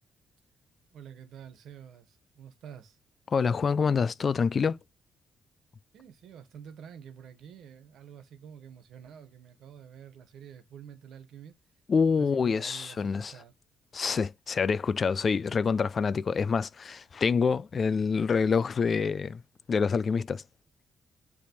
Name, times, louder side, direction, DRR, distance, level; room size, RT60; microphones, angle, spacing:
voice 1, 0.9-3.0 5.9-11.6 12.1-13.5, right 8 dB, 75° right, 1.4 m, -48 dB
voice 2, 3.3-4.8 11.9-13.3 13.9-19.4 19.7-20.4, left 5 dB, 40° left, 0.4 m, -26 dB
9.6 x 3.4 x 3.0 m
cardioid pair, 115°, 0 cm